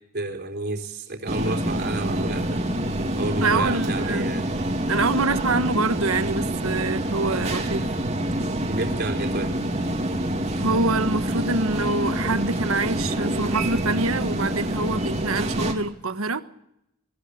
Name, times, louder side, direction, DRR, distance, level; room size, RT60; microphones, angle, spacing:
voice 1, 0.1-2.6 3.2-4.5 8.7-9.5, right 2 dB, 50° right, 3.8 m, -30 dB
sound 1, 1.3-15.7, right 1 dB, 30° right, 3.0 m, -26 dB
voice 2, 3.4-4.3 4.9-7.9 10.6-16.4, right 3 dB, 80° right, 1.4 m, -25 dB
23.5 x 15.5 x 8.3 m
head